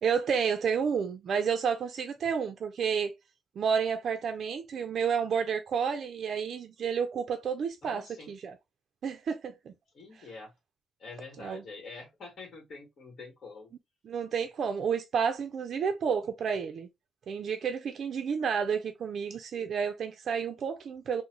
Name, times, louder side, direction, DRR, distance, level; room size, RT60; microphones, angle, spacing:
voice 1, 0.0-3.1 3.6-8.6 9.0-9.7 10.2-10.3 11.4-11.6 14.0-16.9 17.3-21.2, right 6 dB, 60° right, 0.4 m, -30 dB
voice 2, 7.8-8.3 9.9-10.5 11.0-13.7, left 3 dB, 50° left, 1.2 m, -46 dB
3.8 x 2.0 x 2.8 m
cardioid pair, 125°, 0 cm